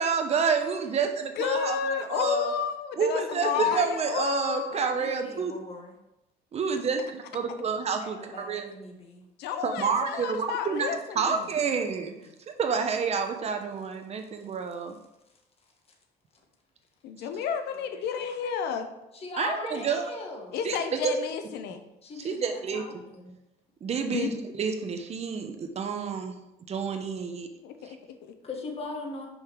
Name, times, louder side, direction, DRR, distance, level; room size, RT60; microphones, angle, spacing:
voice 1, 0.0-1.8 2.1-2.5 3.0-5.5 6.5-8.7 9.6-12.1 12.6-15.0 19.4-20.0 20.6-20.8 21.0-21.1 22.2-22.8 23.8-26.3 26.7-27.5, right 5 dB, 40° right, 5 dB, 0.9 m, -29 dB
voice 2, 1.4-5.1 9.4-11.5 12.2-12.3 17.0-18.9 20.5-21.8 24.1-24.6 27.6-28.4, left 7 dB, 80° left, 7 dB, 0.7 m, -31 dB
voice 3, 3.4-3.8 4.7-6.0 6.6-6.7 8.0-9.2 17.7-18.3 19.1-20.6 21.0-21.3 22.0-23.3 28.4-29.3, left 2 dB, 35° left, 1 dB, 1.5 m, -40 dB
5.6 x 5.3 x 4.6 m, 0.92 s
cardioid pair, 110°, 17 cm